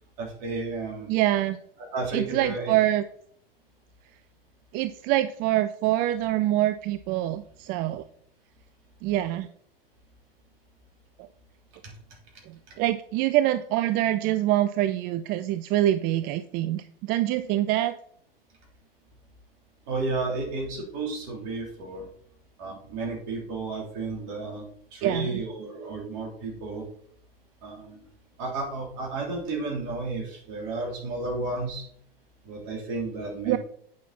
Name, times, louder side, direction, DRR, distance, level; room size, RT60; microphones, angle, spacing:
voice 1, 0.2-1.1 1.8-2.7 11.8-11.9 12.7-12.8 19.9-22.1 22.6-26.8 27.6-28.0 28.4-31.9 32.4-33.6, right 3 dB, 50° right, 0 dB, 3.4 m, -32 dB
voice 2, 1.1-1.6 2.1-3.0 4.7-8.0 9.0-9.5 12.5-18.0 25.0-25.4 33.5-33.6, right 14 dB, 30° right, 12 dB, 0.4 m, -25 dB
8.6 x 5.7 x 4.1 m, 0.63 s
hypercardioid pair, 100°, 30 cm